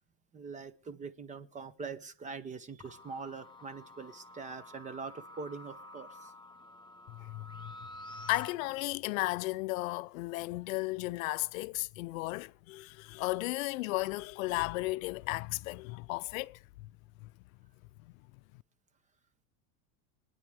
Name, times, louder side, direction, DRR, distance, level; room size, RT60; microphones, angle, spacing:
voice 1, 0.3-6.3, right 5 dB, 20° right, 0.9 m, -43 dB
sound 1, 2.8-8.5, left 1 dB, 10° left, 0.8 m, -50 dB
voice 2, 7.1-7.7 8.2-16.9 17.2-17.3 18.0-18.1, left 21 dB, 75° left, 0.6 m, -35 dB
26.0 x 9.9 x 3.5 m
supercardioid pair, 140°, 41 cm